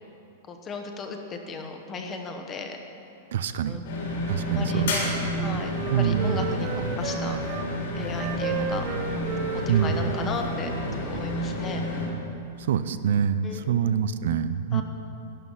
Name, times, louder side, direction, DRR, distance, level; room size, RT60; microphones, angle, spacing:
voice 1, 0.5-2.8 3.7-3.8 4.4-5.1 5.4-6.7 7.0-7.4 8.0-8.8 9.5-11.8 13.4-13.8 14.7-14.8, left 4 dB, 15° left, 4 dB, 0.9 m, -36 dB
voice 2, 3.3-3.8 4.3-5.0 5.9-6.5 9.7-10.1 12.6-14.8, right 8 dB, 70° right, 12 dB, 0.5 m, -25 dB
sound 1, 3.8-12.1, left 1 dB, 70° left, 3.9 m, -30 dB
Wind instrument woodwind instrument, 4.5-7.7 8.2-11.3, right 7 dB, 25° right, 0.7 m, -34 dB
12.0 x 11.5 x 5.6 m, 2.6 s
supercardioid pair, 175°, 0 cm